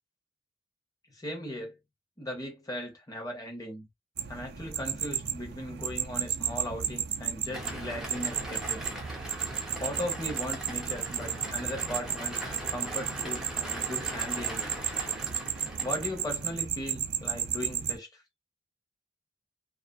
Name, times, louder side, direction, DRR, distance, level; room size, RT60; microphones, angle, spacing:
voice 1, 1.1-1.8 2.2-3.9 4.3-8.8 9.8-14.7 15.8-18.2, equal, 20° left, 0.9 m, -38 dB
sound 1, 4.2-18.0, right 9 dB, 50° right, 0.4 m, -34 dB
sound 2, 7.5-16.6, equal, 5° right, 0.6 m, -41 dB
2.4 x 2.4 x 2.3 m
head